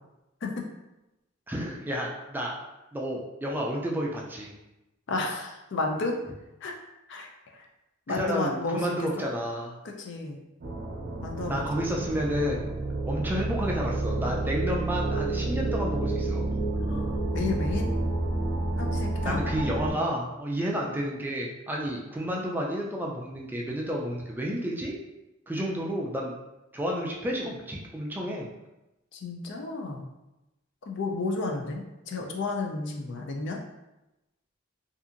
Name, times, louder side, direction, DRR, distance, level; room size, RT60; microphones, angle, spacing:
voice 1, 1.5-2.5 2.9-4.5 8.2-9.8 11.5-12.8 13.1-16.5 19.2-25.0 25.5-26.3 26.7-28.5, equal, 10° right, -2 dB, 0.3 m, -31 dB
voice 2, 5.1-6.2 6.6-6.7 7.1-7.6 8.1-9.2 10.0-10.4 11.2-11.7 16.8-17.9 18.8-19.4 29.1-30.1 30.8-33.6, left 3 dB, 65° left, 2 dB, 0.4 m, -32 dB
sound 1, 10.6-19.9, right 2 dB, 55° right, 0.6 m, -29 dB
2.7 x 2.4 x 2.4 m, 0.96 s
head